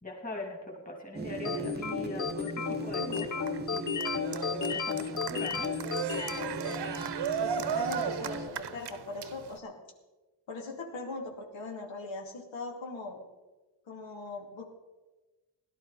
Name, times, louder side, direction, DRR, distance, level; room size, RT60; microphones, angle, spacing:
voice 1, 0.0-5.7, left 2 dB, 20° left, 0 dB, 2.7 m, -41 dB
sound 1, 1.1-8.5, right 2 dB, 20° right, 0.8 m, -39 dB
sound 2, 1.5-7.2, left 7 dB, 45° left, 0.7 m, -34 dB
Cheering, 2.6-9.6, right 7 dB, 60° right, 0.9 m, -36 dB
voice 2, 7.4-9.7 10.5-13.2 13.9-14.6, left 3 dB, 80° left, 0 dB, 2.8 m, -40 dB
18.0 x 12.0 x 4.2 m, 1.2 s
wide cardioid pair, 135°, 45 cm